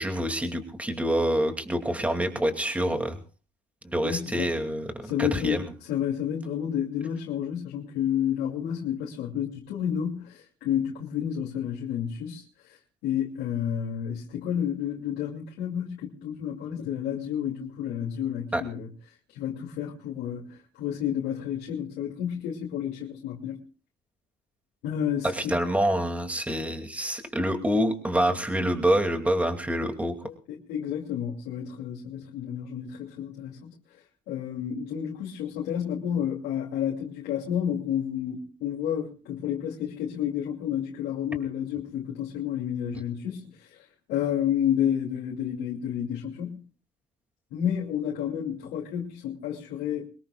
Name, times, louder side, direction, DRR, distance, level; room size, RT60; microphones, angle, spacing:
voice 1, 0.0-3.2 3.8-5.6 18.5-18.6 25.2-30.1, right 1 dB, 10° right, 2.6 m, -26 dB
voice 2, 4.0-4.5 5.0-12.4 13.0-18.9 19.3-23.6 24.8-25.6 30.2-33.7 34.3-43.8 44.1-46.7 47.5-50.1, left 9 dB, 85° left, 2.8 m, -30 dB
23.5 x 20.5 x 2.4 m
cardioid pair, 110°, 17 cm